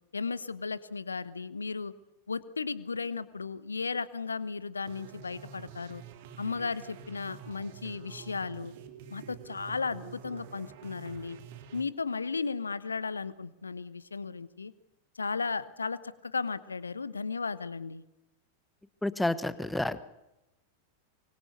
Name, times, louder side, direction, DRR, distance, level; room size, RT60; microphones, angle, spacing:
voice 1, 0.1-1.9 2.3-6.0 6.4-8.7 9.1-11.4 11.7-14.7 15.2-18.0, left 4 dB, 75° left, 17 dB, 1.1 m, -35 dB
sound 1, 4.8-11.8, right 8 dB, 50° right, 2.8 m, -48 dB
voice 2, 19.0-20.0, left 1 dB, 5° left, 15 dB, 1.3 m, -30 dB
24.5 x 24.5 x 6.7 m, 0.94 s
figure-of-eight pair, 90°, 0 cm